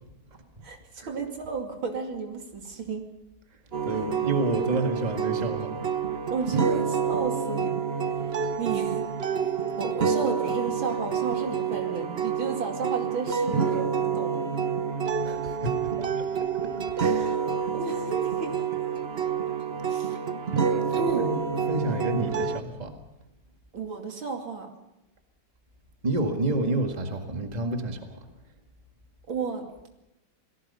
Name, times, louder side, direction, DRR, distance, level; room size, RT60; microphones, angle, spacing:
voice 1, 0.6-3.0 4.0-4.1 6.3-7.7 8.1-9.0 9.8-14.5 17.1-18.5 19.9-20.2 20.9-21.3 21.9-22.0 23.7-24.7 29.3-29.7, right 4 dB, 80° right, 3 dB, 3.3 m, -33 dB
sound 1, 3.7-22.6, right 6 dB, 45° right, 0.9 m, -28 dB
voice 2, 3.8-5.7 15.2-15.8 17.0-17.4 21.2-21.3 21.7-23.0 26.0-28.0, right 2 dB, 20° right, 5 dB, 1.9 m, -28 dB
28.0 x 18.5 x 5.6 m, 0.88 s
omnidirectional pair, 2.2 m